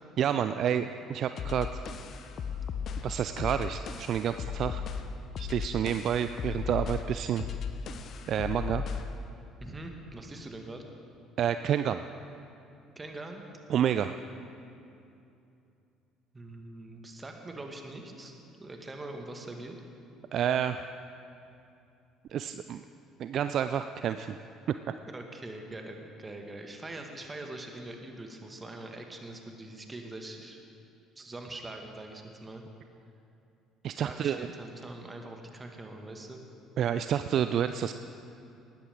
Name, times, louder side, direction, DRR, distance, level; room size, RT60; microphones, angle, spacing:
voice 1, 0.2-1.7 3.0-4.8 5.4-7.5 8.3-8.8 11.4-12.0 13.7-14.2 20.3-20.9 22.3-22.8 23.2-24.4 33.8-34.5 36.8-37.9, right 9 dB, 50° right, 10 dB, 0.3 m, -29 dB
sound 1, 1.4-9.2, left 6 dB, 50° left, 0.8 m, -36 dB
voice 2, 9.6-10.8 13.0-13.4 16.3-18.3 18.6-19.8 25.1-30.6 31.2-32.6 34.0-36.4, right 2 dB, 20° right, 3 dB, 1.9 m, -43 dB
19.0 x 13.0 x 3.7 m, 2.7 s
figure-of-eight pair, 55°, 0 cm